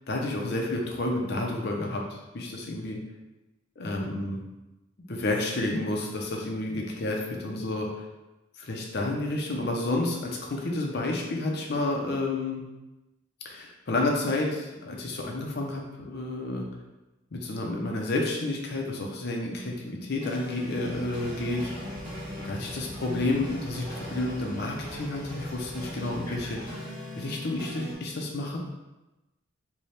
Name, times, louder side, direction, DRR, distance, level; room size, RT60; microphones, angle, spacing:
voice 1, 0.1-3.0 3.8-4.4 5.1-8.0 8.6-12.6 13.4-16.7 17.3-21.7 22.4-26.6 27.2-28.6, left 2 dB, 55° left, 0 dB, 0.6 m, -30 dB
sound 1, 20.2-27.9, equal, 20° right, 1.1 m, -40 dB
sound 2, 20.7-26.7, equal, 15° left, 0.8 m, -43 dB
4.1 x 2.3 x 3.2 m, 1.0 s
head